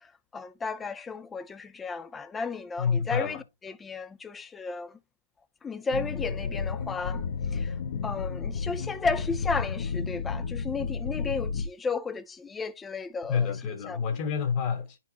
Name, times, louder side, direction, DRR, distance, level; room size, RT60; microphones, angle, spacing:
voice 1, 0.0-3.4 3.6-5.0 5.6-7.7 8.0-13.5 13.9-14.0, left 4 dB, 10° left, 0.4 m, -34 dB
voice 2, 2.8-3.4 13.3-15.0, left 6 dB, 30° left, 1.5 m, -28 dB
sound 1, 5.9-11.7, left 5 dB, 50° left, 1.2 m, -32 dB
9.9 x 4.5 x 2.9 m
hypercardioid pair, 155°, 0 cm